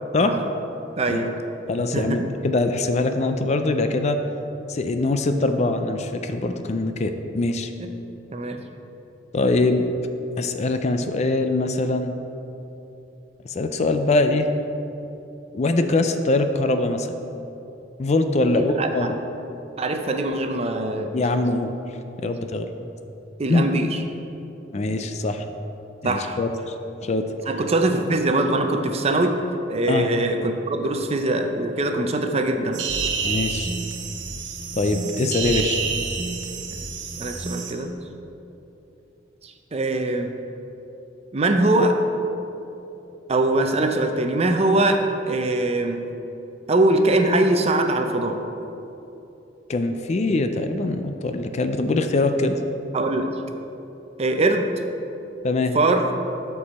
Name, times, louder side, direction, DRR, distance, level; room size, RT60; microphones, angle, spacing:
voice 1, 1.0-1.4 1.9-2.2 8.3-8.6 18.5-19.1 19.8-21.2 22.2-22.3 23.4-24.0 26.0-26.4 27.5-29.4 29.7-32.8 37.2-37.9 39.4-40.4 41.3-42.0 43.3-46.1 46.7-48.5 52.9-53.4 54.2-54.7 55.7-56.1, right 2 dB, 35° right, 6 dB, 0.5 m, -22 dB
voice 2, 1.7-4.2 4.7-7.7 9.3-9.9 10.4-12.1 13.4-14.5 15.5-17.1 18.0-19.2 21.1-21.7 22.2-22.7 23.5-23.6 24.7-25.4 26.0-26.7 27.0-27.3 29.9-30.1 33.2-33.7 34.8-35.8 49.7-52.6 55.4-55.8, left 2 dB, 35° left, 7 dB, 0.4 m, -23 dB
sound 1, 32.7-37.7, right 5 dB, 75° right, 0.9 m, -28 dB
12.5 x 4.7 x 4.2 m, 2.9 s
head